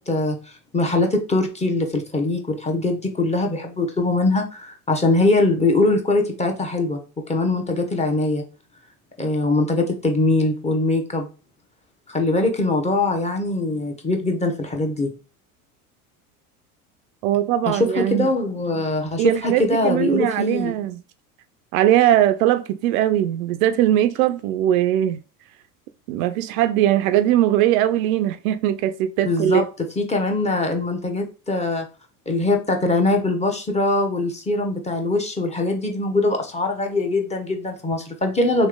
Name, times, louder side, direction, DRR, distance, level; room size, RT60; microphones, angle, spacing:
voice 1, 0.1-7.0 7.3-8.4 9.2-11.3 12.1-15.1 17.7-20.7 29.2-29.6 30.0-31.9 32.3-38.7, left 2 dB, 15° left, 0.9 m, -22 dB
voice 2, 17.2-18.3 19.2-21.0 21.7-25.2 26.1-29.6, right 12 dB, 65° right, 0.5 m, -20 dB
3.1 x 2.9 x 3.7 m
hypercardioid pair, 95°, 46 cm